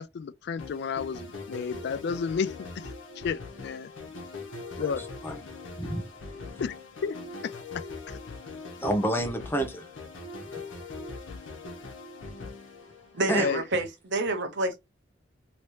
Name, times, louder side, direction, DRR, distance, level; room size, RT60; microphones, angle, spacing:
voice 1, 0.0-2.9 3.2-3.9 4.8-5.0 6.6-6.7 7.0-7.2 7.4-8.2 13.4-13.6, left 6 dB, 60° left, 0.3 m, -32 dB
sound 1, 0.6-13.5, left 3 dB, 85° left, 1.0 m, -41 dB
voice 2, 5.8-6.1 6.5-6.6 8.8-9.9 13.3-13.5, right 1 dB, 10° left, 0.6 m, -29 dB
voice 3, 13.1-14.8, right 2 dB, 65° right, 0.9 m, -28 dB
3.0 x 2.8 x 3.1 m
head